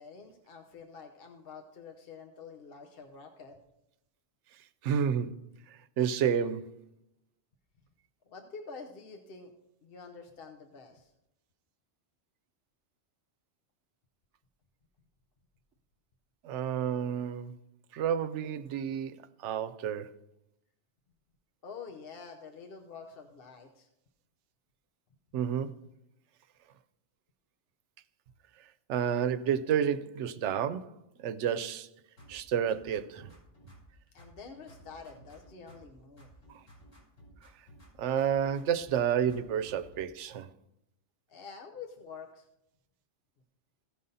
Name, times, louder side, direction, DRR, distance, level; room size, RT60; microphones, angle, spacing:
voice 1, 0.0-3.6 8.3-9.5 9.8-11.1 21.6-23.9 34.1-36.3 41.3-42.5, left 5 dB, 55° left, 1.0 m, -47 dB
voice 2, 4.8-5.4 5.7-6.8 16.4-17.5 17.9-20.1 25.3-25.7 28.9-30.9 31.2-31.9 32.3-33.3 38.0-40.5, right 8 dB, 85° right, 0.9 m, -30 dB
sound 1, 32.2-33.9 34.2-35.9 36.2-37.9 38.2-40.0, equal, 90° left, 3.7 m, -56 dB
16.0 x 5.5 x 3.9 m
omnidirectional pair, 1.2 m